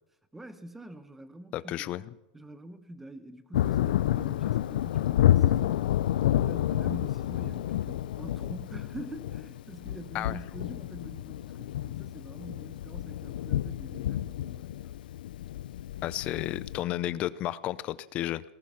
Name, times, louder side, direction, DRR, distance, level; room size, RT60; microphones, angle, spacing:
voice 1, 0.3-1.9 2.3-5.9 6.2-15.0, right 1 dB, 5° right, 12 dB, 0.9 m, -45 dB
voice 2, 1.5-2.1 10.1-10.4 16.0-18.4, left 14 dB, 25° left, 18 dB, 0.5 m, -32 dB
Thunder, 3.5-16.8, left 12 dB, 85° left, 0.5 m, -29 dB
19.0 x 12.5 x 5.7 m, 0.97 s
supercardioid pair, 170°, 5 cm